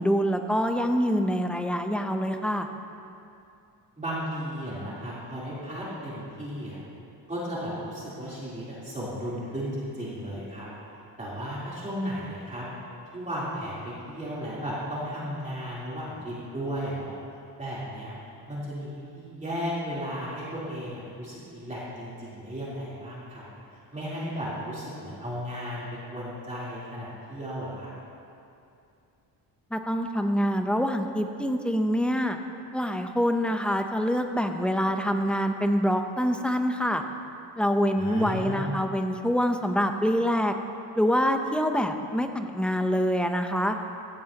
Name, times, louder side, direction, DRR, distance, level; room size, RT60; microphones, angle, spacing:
voice 1, 0.0-2.7 29.7-32.4 32.7-37.0 37.6-40.5 41.0-43.8, equal, ahead, 5 dB, 0.7 m, -25 dB
voice 2, 4.0-6.8 7.3-10.7 11.2-12.7 13.1-17.2 17.6-18.1 18.5-23.5 23.9-25.8 26.1-28.0 38.0-38.8, equal, 15° right, -9 dB, 3.5 m, -34 dB
16.0 x 15.5 x 2.9 m, 2.6 s
cardioid pair, 120°, 43 cm